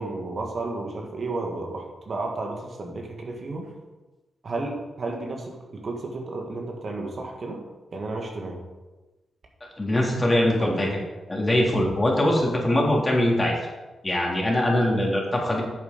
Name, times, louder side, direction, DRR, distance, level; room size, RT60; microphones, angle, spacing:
voice 1, 0.0-3.7 4.4-7.6 7.9-8.6 10.6-11.0, right 2 dB, 55° right, 1 dB, 1.9 m, -32 dB
voice 2, 9.8-10.9 11.3-13.5 14.0-15.6, left 1 dB, 25° left, -2 dB, 3.4 m, -22 dB
8.9 x 7.0 x 5.3 m, 1.1 s
supercardioid pair, 45°, 0 cm